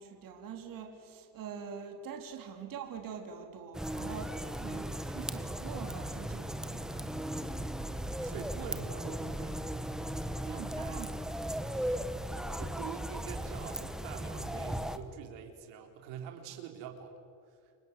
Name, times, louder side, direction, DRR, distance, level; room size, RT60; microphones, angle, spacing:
voice 1, 0.0-7.2 10.3-11.3, right 7 dB, 50° right, 4 dB, 3.8 m, -45 dB
sound 1, 3.7-15.0, right 1 dB, ahead, 1.3 m, -37 dB
voice 2, 8.2-9.6 12.4-17.1 17.5-17.6, right 8 dB, 90° right, 3 dB, 3.9 m, -45 dB
29.5 x 24.5 x 8.4 m, 2.2 s
cardioid pair, 140°, 42 cm